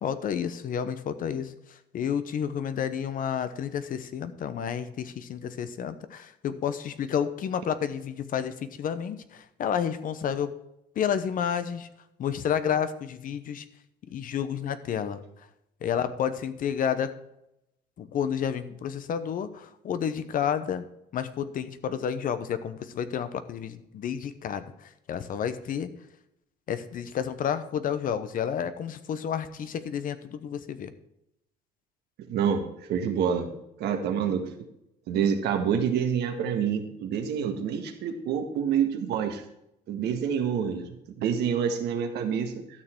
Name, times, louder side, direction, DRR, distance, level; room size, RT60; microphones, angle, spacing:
voice 1, 0.0-10.5 10.9-11.9 12.2-13.7 14.1-15.2 15.8-17.1 18.0-20.9 21.1-25.9 26.7-30.9, left 8 dB, 55° left, 12 dB, 1.0 m, -30 dB
voice 2, 32.3-32.6 32.9-33.5 33.8-34.5 35.1-39.4 39.9-40.9 41.2-42.6, right 7 dB, 75° right, 5 dB, 1.7 m, -27 dB
12.5 x 6.6 x 4.5 m, 0.83 s
cardioid pair, 110°, 17 cm